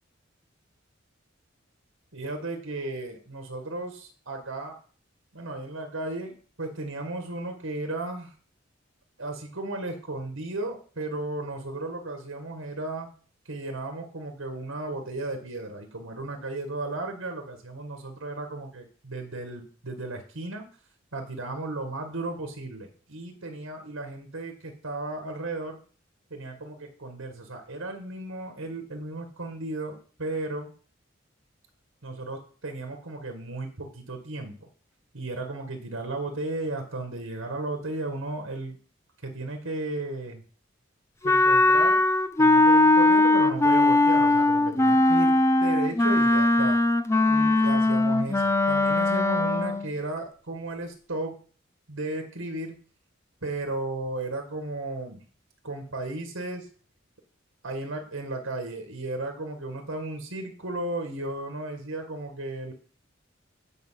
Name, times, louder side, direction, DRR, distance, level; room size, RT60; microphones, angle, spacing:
voice 1, 2.1-4.8 5.3-6.3 6.6-8.3 9.2-13.1 13.5-20.7 21.1-25.8 26.3-30.7 32.0-34.6 35.1-38.8 39.2-40.4 41.2-42.0 42.4-46.8 47.2-51.4 51.9-52.8 53.4-55.2 55.6-56.7 57.6-62.7, right 2 dB, 85° right, 4 dB, 1.9 m, -34 dB
Wind instrument woodwind instrument, 41.2-49.9, left 2 dB, 15° left, 0.5 m, -20 dB
9.3 x 5.2 x 7.6 m, 0.42 s
head